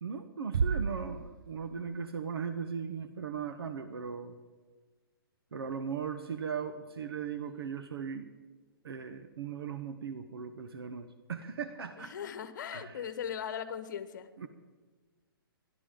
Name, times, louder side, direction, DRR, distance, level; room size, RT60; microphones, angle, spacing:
voice 1, 0.0-4.4 5.5-8.3 8.8-12.1 12.7-13.0 14.4-14.5, right 6 dB, 80° right, 9 dB, 1.0 m, -38 dB
Bass drum, 0.5-2.0, right 6 dB, 60° right, 0.6 m, -32 dB
voice 2, 12.0-14.3, left 8 dB, 50° left, 11 dB, 1.3 m, -39 dB
30.0 x 12.0 x 3.8 m, 1.4 s
hypercardioid pair, 165°, 12 cm